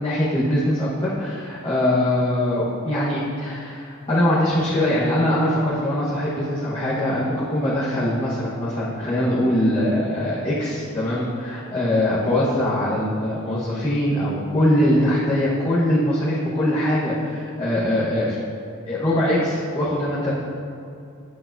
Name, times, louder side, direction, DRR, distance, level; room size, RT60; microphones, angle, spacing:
voice 1, 0.0-18.4 18.9-20.3, left 1 dB, 25° left, -10 dB, 1.2 m, -22 dB
8.7 x 8.6 x 2.7 m, 2.6 s
head